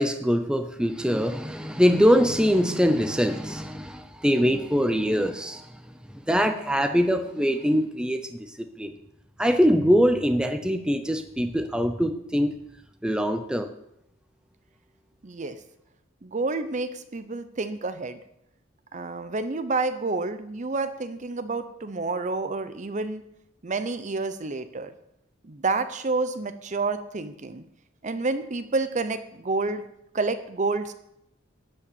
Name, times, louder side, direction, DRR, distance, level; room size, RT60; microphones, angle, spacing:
voice 1, 0.0-5.7 6.3-8.5 8.8-8.9 9.4-12.5 13.0-13.7, equal, 5° right, 7 dB, 0.7 m, -23 dB
voice 2, 15.2-15.6 16.2-18.2 18.9-23.2 23.6-24.9 25.4-27.6 28.0-29.9 30.1-30.9, right 3 dB, 40° right, 11 dB, 0.7 m, -29 dB
13.0 x 5.4 x 8.8 m, 0.79 s
head